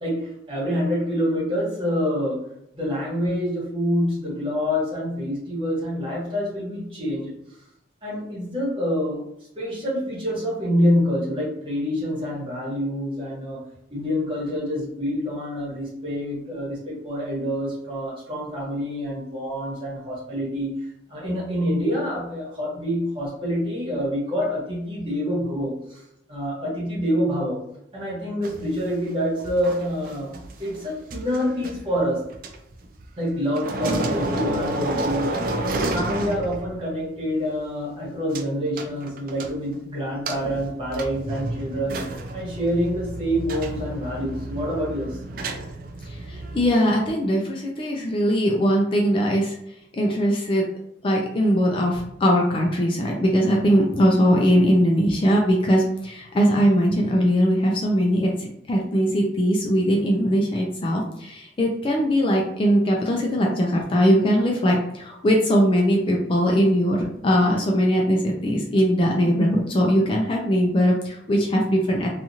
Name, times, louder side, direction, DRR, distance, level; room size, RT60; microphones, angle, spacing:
voice 1, 0.0-2.4 2.7-7.3 8.0-9.2 9.5-13.6 13.9-20.8 21.1-26.0 26.3-27.6 27.9-30.3 30.6-32.2 33.2-35.5 35.9-42.0 42.3-45.2, equal, 30° right, -7 dB, 1.2 m, -26 dB
sound 1, 28.4-33.3 33.5-36.9 37.2-37.3 38.3-38.4 38.8-39.8 40.2-46.7, right 2 dB, 50° right, 0.3 m, -30 dB
voice 2, 46.0-49.6 49.9-50.7 51.0-72.1, equal, 30° left, 0 dB, 0.4 m, -20 dB
2.9 x 2.4 x 2.6 m, 0.80 s
head